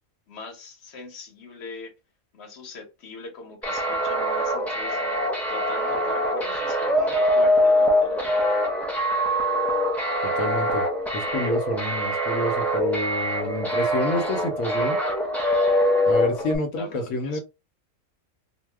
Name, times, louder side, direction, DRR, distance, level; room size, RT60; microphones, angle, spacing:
voice 1, 0.3-1.9 2.3-8.4 16.7-17.4, left 3 dB, 55° left, 1.2 m, -41 dB
sound 1, 3.6-16.6, equal, ahead, 0.3 m, -23 dB
voice 2, 10.4-10.8 11.1-15.0 16.1-17.4, left 1 dB, 85° left, 1.1 m, -28 dB
2.7 x 2.0 x 3.3 m
omnidirectional pair, 1.4 m